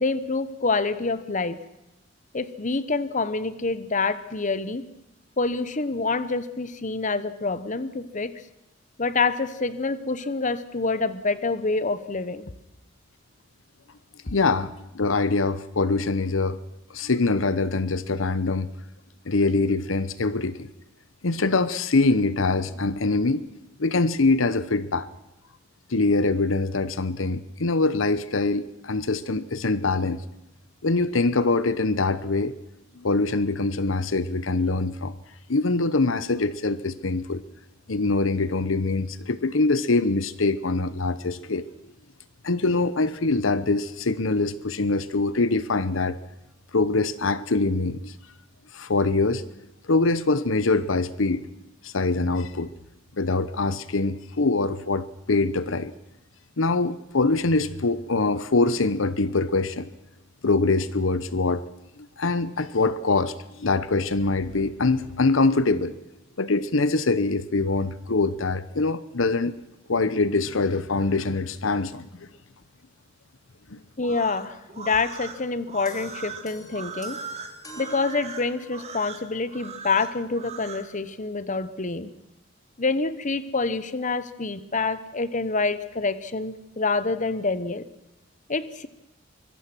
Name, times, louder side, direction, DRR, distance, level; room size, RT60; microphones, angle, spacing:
voice 1, 0.0-1.6 2.3-4.9 5.4-8.3 9.0-12.5 74.0-77.2 77.8-82.1 82.8-87.8 88.5-88.9, left 3 dB, 40° left, 14 dB, 1.1 m, -27 dB
voice 2, 14.2-16.6 16.9-18.7 19.2-20.7 21.2-23.5 23.8-25.1 25.9-30.2 30.8-32.5 33.0-35.1 35.5-37.4 37.9-41.6 42.4-46.2 46.7-48.1 48.7-49.4 49.9-51.5 51.8-52.7 53.2-55.9 56.6-59.9 60.4-61.6 62.2-65.9 66.4-69.5 69.9-72.3 73.7-73.8, left 3 dB, 80° left, 15 dB, 0.9 m, -24 dB
sound 1, 74.0-80.9, right 5 dB, 35° right, 2.4 m, -39 dB
sound 2, 75.9-79.1, equal, 20° left, 3.1 m, -46 dB
24.5 x 22.0 x 6.2 m, 0.91 s
head